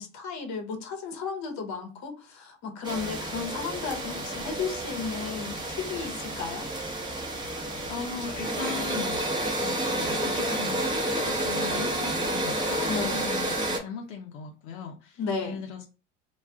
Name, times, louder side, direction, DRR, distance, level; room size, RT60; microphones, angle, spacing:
voice 1, 0.0-6.7 12.9-13.3 15.2-15.6, left 5 dB, 45° left, 1.0 m, -34 dB
sound 1, 2.8-13.8, right 1 dB, 10° right, 0.8 m, -30 dB
voice 2, 7.9-9.2 9.6-15.9, left 6 dB, 75° left, 0.7 m, -38 dB
2.3 x 2.3 x 3.5 m
hypercardioid pair, 90°, 41 cm